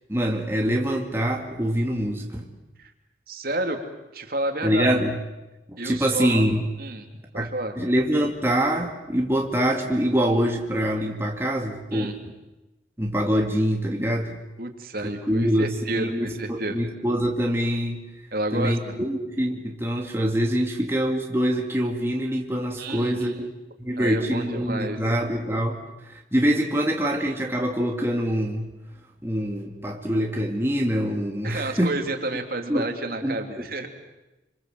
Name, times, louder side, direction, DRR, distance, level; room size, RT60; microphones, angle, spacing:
voice 1, 0.1-2.5 4.6-5.1 5.8-6.7 7.3-12.1 13.0-14.4 15.0-18.0 18.5-23.5 23.8-28.7 29.2-31.9 32.7-32.9 33.2-33.4, equal, 15° right, 1 dB, 2.2 m, -25 dB
voice 2, 3.3-3.8 4.1-4.9 5.8-6.4 6.8-7.1 7.3-7.7 11.9-12.2 14.6-16.8 18.3-18.9 22.8-23.5 24.0-25.0 31.4-33.9, right 2 dB, 50° right, 5 dB, 3.1 m, -30 dB
27.0 x 26.5 x 7.9 m, 1.0 s
head